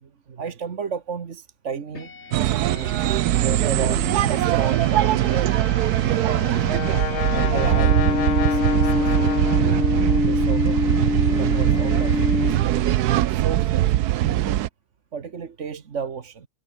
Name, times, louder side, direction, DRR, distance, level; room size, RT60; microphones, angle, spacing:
voice 1, 0.0-2.1 2.5-2.9 3.3-6.7 7.3-8.0 8.4-9.3 10.2-10.8 11.4-12.2 12.4-12.8 13.3-14.0 14.2-14.6 15.1-16.5, right 6 dB, 50° right, 1.7 m, -33 dB
sound 1, 1.9-13.0, left 4 dB, 45° left, 2.4 m, -27 dB
sound 2, 2.3-14.7, right 14 dB, 90° right, 1.2 m, -21 dB
Brass instrument, 5.9-10.6, left 10 dB, 90° left, 1.5 m, -31 dB
omnidirectional pair, 1.6 m